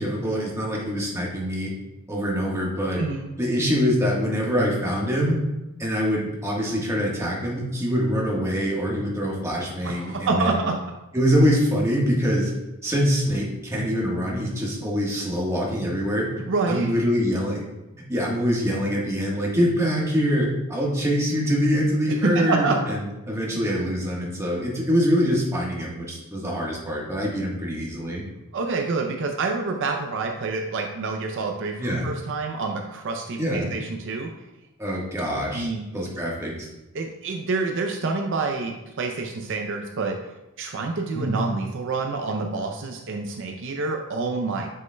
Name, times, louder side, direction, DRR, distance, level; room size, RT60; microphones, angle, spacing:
voice 1, 0.0-1.7 2.1-3.0 3.4-5.4 5.8-10.6 11.1-12.5 12.8-16.3 16.7-17.6 18.1-28.2 31.8-32.1 33.4-33.7 34.8-36.7 41.1-41.4, equal, 15° right, -3 dB, 1.3 m, -24 dB
voice 2, 3.0-3.3 9.8-10.7 16.5-16.9 22.2-22.8 28.5-34.3 35.5-35.8 36.9-40.2 40.6-44.7, right 3 dB, 55° right, 2 dB, 0.5 m, -27 dB
7.7 x 6.2 x 2.2 m, 0.97 s
head